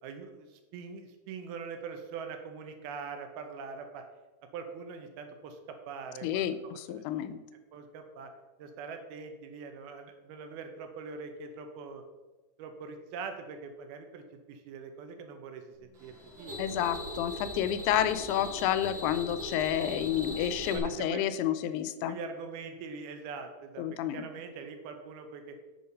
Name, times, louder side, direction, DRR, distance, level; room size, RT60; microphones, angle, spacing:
voice 1, 0.0-4.1 4.5-6.8 7.7-8.3 8.6-12.0 12.6-16.6 20.7-21.3 22.1-25.6, right 5 dB, 75° right, 6 dB, 2.8 m, -43 dB
voice 2, 6.2-7.4 16.6-22.2 23.8-24.2, left 11 dB, 90° left, 12 dB, 2.6 m, -30 dB
sound 1, 15.9-20.8, equal, 55° right, 1.3 m, -40 dB
8.7 x 6.6 x 5.3 m, 1.2 s
omnidirectional pair, 4.6 m